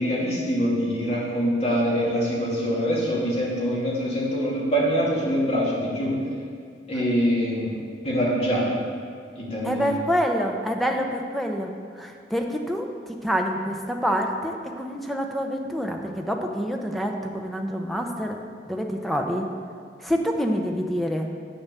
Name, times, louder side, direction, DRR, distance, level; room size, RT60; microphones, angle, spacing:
voice 1, 0.0-6.2 6.9-8.7 9.4-9.9, equal, 35° left, -6 dB, 2.7 m, -24 dB
voice 2, 9.6-11.7 12.0-12.9 13.2-18.4 18.7-19.5 20.0-21.3, equal, ahead, 2 dB, 0.8 m, -26 dB
7.8 x 7.0 x 6.9 m, 2.2 s
head